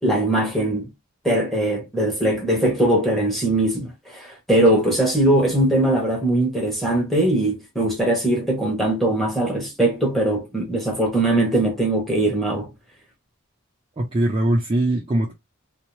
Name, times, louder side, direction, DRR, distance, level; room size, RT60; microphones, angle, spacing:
voice 1, 0.0-0.9 1.2-12.7, right 1 dB, ahead, 0.9 m, -21 dB
voice 2, 14.0-15.3, right 1 dB, 25° right, 0.4 m, -21 dB
2.6 x 2.0 x 2.9 m
head